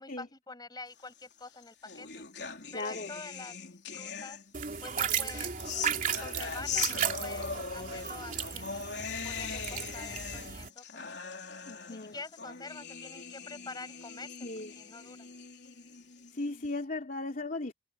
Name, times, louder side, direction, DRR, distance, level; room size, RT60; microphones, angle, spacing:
voice 1, 0.0-2.3 2.7-3.6 3.9-4.4 4.8-5.5 6.2-8.9 9.2-10.8 11.1-11.2 11.9-14.3 14.7-15.3, left 3 dB, 25° left, 7.7 m, -46 dB
sound 1, 1.3-4.7 5.2-16.7, left 6 dB, 70° left, 3.8 m, -41 dB
voice 2, 2.7-3.1 6.7-6.8 11.7-12.1 14.4-14.7 16.3-17.7, left 2 dB, 50° left, 2.9 m, -37 dB
sound 2, 4.5-10.7, right 8 dB, 50° right, 3.1 m, -35 dB
head